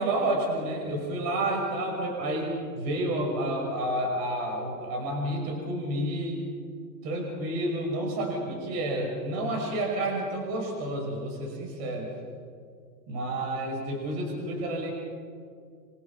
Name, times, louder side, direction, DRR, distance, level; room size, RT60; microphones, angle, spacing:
voice 1, 0.0-6.4 7.0-12.1 13.1-14.9, right 1 dB, 35° right, 0 dB, 5.7 m, -30 dB
27.5 x 24.5 x 4.9 m, 2.2 s
hypercardioid pair, 145°, 48 cm